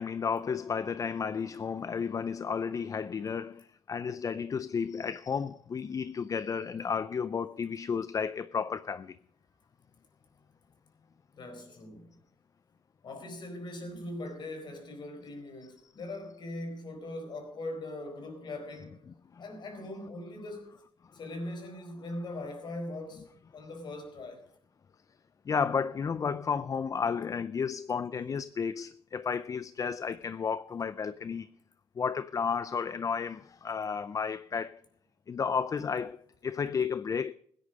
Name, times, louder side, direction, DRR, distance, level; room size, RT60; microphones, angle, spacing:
voice 1, 0.0-9.2 15.8-15.9 19.1-19.4 25.5-31.5 32.0-34.8 35.3-37.3, left 6 dB, 35° left, 0.4 m, -32 dB
voice 2, 11.3-12.2 13.0-19.1 19.4-20.7 21.1-24.4, left 1 dB, 50° left, 4.4 m, -41 dB
16.0 x 10.0 x 5.2 m
cardioid pair, 90°, 10 cm